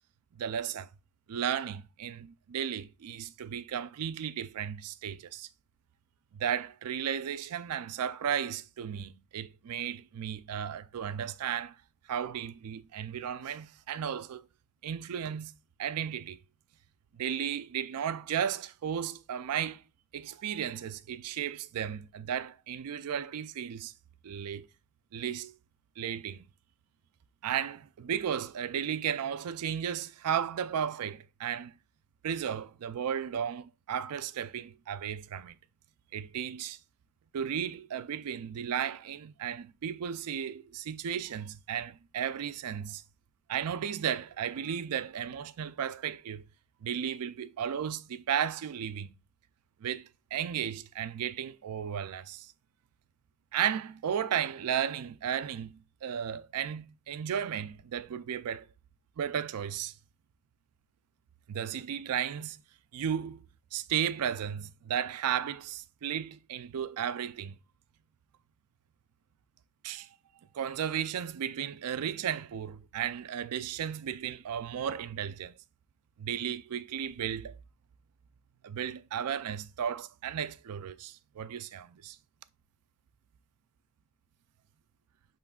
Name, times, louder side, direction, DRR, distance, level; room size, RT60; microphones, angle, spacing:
voice 1, 0.4-0.9 1.3-5.5 6.3-11.7 12.1-14.4 14.8-15.5 15.8-16.4 17.2-19.8 20.1-23.9 24.2-24.7 25.1-25.5 26.0-26.4 27.4-31.7 32.2-35.6 36.1-36.8 37.3-43.0 43.5-46.4 46.8-49.1 49.8-52.5 53.5-55.7 56.0-58.7 59.2-59.9 61.5-62.6 62.9-63.4 63.7-67.6 69.8-70.1 70.5-75.5 76.2-77.6 78.6-82.2, right 8 dB, 85° right, 0.4 m, -34 dB
5.7 x 3.8 x 2.3 m
head